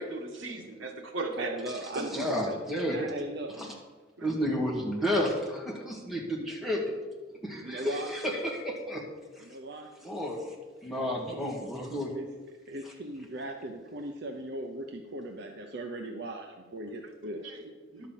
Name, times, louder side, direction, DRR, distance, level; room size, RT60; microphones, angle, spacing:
voice 1, 0.0-1.6 1.9-2.6 3.0-3.1 3.6-3.7 4.2-4.4 5.9-6.1 6.4-6.5 17.0-17.1 17.4-18.1, right 2 dB, 90° right, 3 dB, 1.6 m, -38 dB
voice 2, 1.4-2.5 2.9-3.6 7.6-8.1 9.4-9.9 11.0-11.6 12.1-12.3 12.7-17.4, right 1 dB, 60° right, 3 dB, 0.8 m, -39 dB
voice 3, 2.1-3.0 3.6-3.7 4.2-6.9 7.4-9.0 9.4-9.5 10.0-10.5 10.8-12.1, equal, ahead, -2 dB, 1.9 m, -31 dB
11.0 x 5.8 x 7.3 m, 1.4 s
head